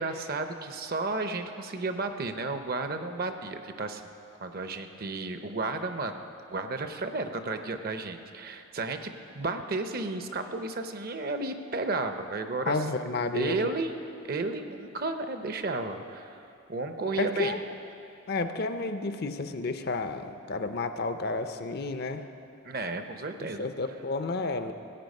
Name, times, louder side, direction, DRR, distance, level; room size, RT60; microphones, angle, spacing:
voice 1, 0.0-4.0 4.4-12.8 13.3-14.0 14.2-16.4 16.7-17.6 22.6-23.7, right 3 dB, 45° right, 8 dB, 0.7 m, -33 dB
voice 2, 12.7-13.7 17.2-17.6 18.3-22.2 23.6-24.7, left 3 dB, 50° left, 9 dB, 0.6 m, -31 dB
16.5 x 8.6 x 5.4 m, 2.8 s
head